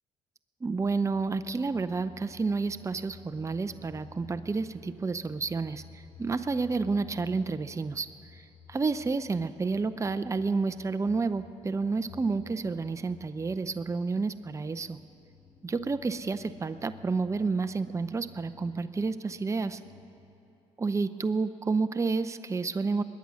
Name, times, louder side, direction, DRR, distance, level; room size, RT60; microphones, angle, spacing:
voice 1, 0.6-8.1 8.3-8.4 8.7-15.0 15.6-19.8 20.8-23.0, right 4 dB, 25° right, 10 dB, 0.6 m, -30 dB
sound 1, 0.8-20.2, left 6 dB, 80° left, 2.4 m, -53 dB
21.5 x 9.5 x 6.3 m, 2.9 s
supercardioid pair, 65°, 13 cm